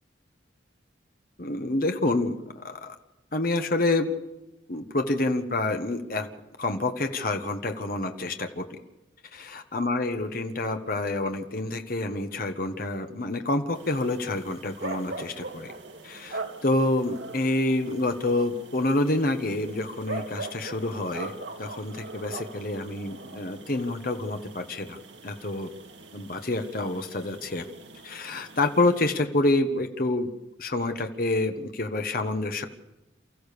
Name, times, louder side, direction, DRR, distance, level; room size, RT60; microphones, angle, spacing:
voice 1, 1.4-3.0 3.3-4.1 4.7-6.3 6.6-8.8 9.3-15.7 16.0-21.3 21.6-25.7 26.1-27.6 28.0-30.3 30.6-32.7, left 2 dB, 50° left, 6 dB, 1.4 m, -28 dB
sound 1, 13.7-29.2, right 3 dB, 70° right, 2.1 m, -42 dB
29.0 x 14.5 x 6.9 m, 0.97 s
head